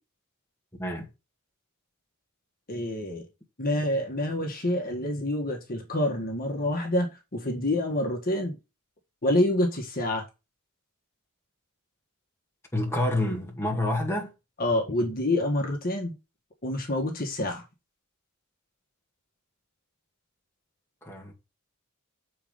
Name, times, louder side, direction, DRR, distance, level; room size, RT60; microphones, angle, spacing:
voice 1, 2.7-3.2 3.6-8.6 9.2-10.2 14.6-16.1 16.6-17.6, left 1 dB, 40° left, 1.7 m, -27 dB
voice 2, 12.7-14.3 21.0-21.3, left 1 dB, 10° left, 2.0 m, -28 dB
7.2 x 4.7 x 5.2 m
head